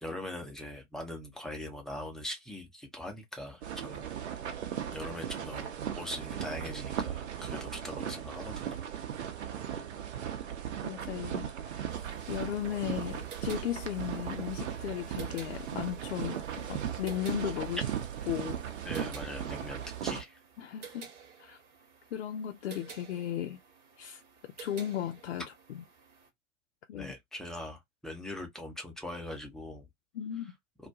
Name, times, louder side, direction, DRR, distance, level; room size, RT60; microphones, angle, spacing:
voice 1, 0.0-4.1 4.6-4.7 4.9-5.7 5.9-8.8 18.8-20.4 26.9-29.9, left 1 dB, ahead, 0.6 m, -41 dB
sound 1, 3.6-20.2, right 9 dB, 60° right, 0.8 m, -37 dB
voice 2, 10.8-11.5 12.3-17.8 18.3-18.6 20.1-20.2 20.6-21.1 21.4-21.6 22.1-23.6 24.0-25.8 26.9-27.1 30.1-30.5, left 11 dB, 60° left, 0.5 m, -36 dB
sound 2, 11.9-26.3, right 6 dB, 40° right, 1.1 m, -53 dB
2.2 x 2.2 x 2.7 m
figure-of-eight pair, 95°, 38 cm